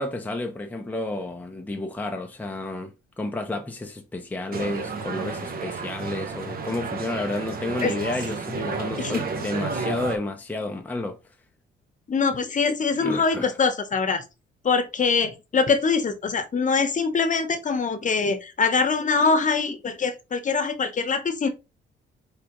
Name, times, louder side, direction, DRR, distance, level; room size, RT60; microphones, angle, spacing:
voice 1, 0.0-11.2 13.0-13.5, left 2 dB, 10° left, 0.7 m, -31 dB
sound 1, 4.5-10.2, right 4 dB, 50° right, 1.1 m, -32 dB
voice 2, 12.1-14.2 14.6-21.5, left 5 dB, 40° left, 1.0 m, -23 dB
4.8 x 3.6 x 3.0 m
cardioid pair, 90°, 20 cm